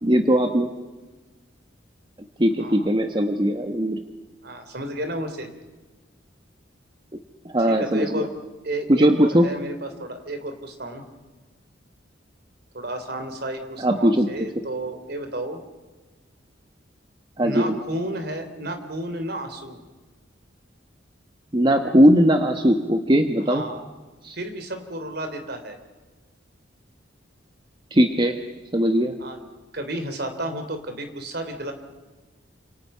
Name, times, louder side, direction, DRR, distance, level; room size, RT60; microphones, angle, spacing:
voice 1, 0.0-0.7 2.4-4.0 7.5-8.3 8.9-9.4 13.8-14.5 17.4-17.8 21.5-23.6 24.2-24.4 27.9-28.4 28.7-29.1, equal, 25° right, 6 dB, 1.3 m, -19 dB
voice 2, 4.4-5.5 7.7-8.3 8.6-11.0 12.7-15.6 17.4-19.8 23.5-23.8 24.3-25.8 29.2-29.4 29.7-31.7, right 1 dB, 60° right, 7 dB, 3.6 m, -32 dB
29.5 x 27.5 x 5.7 m, 1.3 s
head